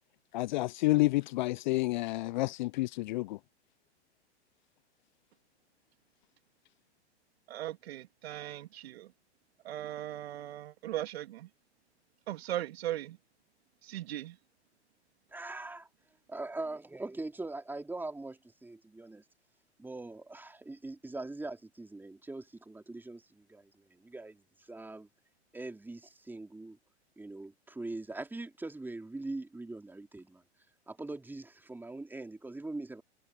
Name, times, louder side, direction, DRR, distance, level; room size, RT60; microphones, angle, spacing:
voice 1, 0.3-3.4, left 20 dB, 45° left, 0.4 m, -29 dB
voice 2, 7.5-9.1 9.6-11.5 12.3-13.2 13.8-14.4, right 13 dB, 65° right, 2.9 m, -38 dB
voice 3, 15.3-15.9 16.3-19.2 19.8-25.1 25.5-26.8 27.2-30.4 30.9-33.0, right 2 dB, 5° right, 3.1 m, -42 dB
hypercardioid pair, 110°, 34 cm